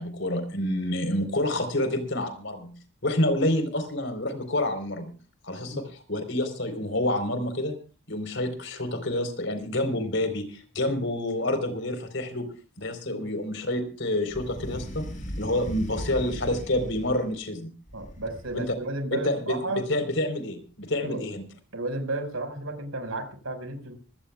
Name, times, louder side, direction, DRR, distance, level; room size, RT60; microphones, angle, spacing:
voice 1, 0.0-2.7 3.0-5.1 5.4-7.7 8.1-12.5 12.8-15.1 15.4-17.7 18.5-18.7 19.1-21.4, left 1 dB, 60° left, 9 dB, 4.2 m, -28 dB
sound 1, 14.3-17.3 17.9-18.8, equal, 35° left, 7.5 m, -38 dB
voice 2, 17.9-19.8 21.0-21.2 21.7-24.0, right 2 dB, 90° right, 7 dB, 5.3 m, -33 dB
25.0 x 17.5 x 2.4 m, 0.36 s
head